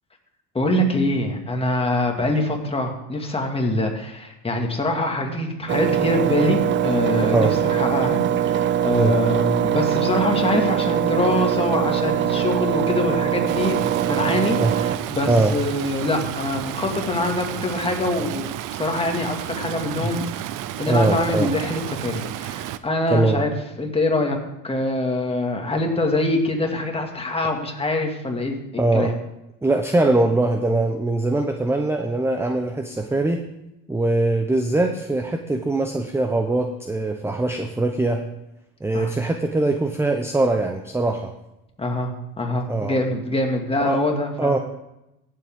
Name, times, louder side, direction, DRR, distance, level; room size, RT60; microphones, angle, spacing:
voice 1, 0.5-13.8 14.0-20.2 20.8-23.5 23.8-24.4 24.6-29.2 38.9-39.1 41.8-42.1 42.4-44.6, left 2 dB, 15° left, 2 dB, 2.1 m, -24 dB
Engine, 5.7-15.0, right 10 dB, 35° right, 0.4 m, -22 dB
Stream, 13.5-22.8, right 12 dB, 65° right, 0.7 m, -32 dB
voice 2, 15.2-15.5 20.0-20.1 20.9-21.5 23.1-23.4 28.8-29.1 29.6-33.4 33.9-38.2 38.8-41.3 42.7-43.0 43.8-44.0 44.4-44.6, right 2 dB, 5° right, 5 dB, 0.7 m, -22 dB
17.0 x 7.6 x 3.6 m, 0.90 s
supercardioid pair, 105°, 35 cm